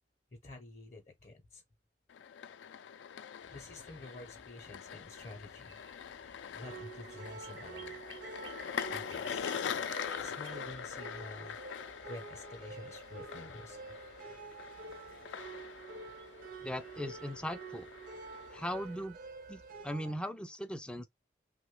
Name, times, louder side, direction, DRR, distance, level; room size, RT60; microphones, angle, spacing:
voice 1, 0.3-1.6 3.5-5.8 6.5-8.0 8.9-9.5 10.2-11.6 12.1-13.8, left 2 dB, 40° left, 0.6 m, -49 dB
sound 1, 2.1-19.0, left 8 dB, 80° left, 0.3 m, -43 dB
sound 2, 3.4-20.0, right 4 dB, 80° right, 0.8 m, -59 dB
sound 3, 6.6-20.1, right 4 dB, 50° right, 0.5 m, -48 dB
voice 2, 16.6-17.9 18.5-19.2 19.5-21.1, equal, 5° left, 0.3 m, -39 dB
3.0 x 2.1 x 3.1 m
head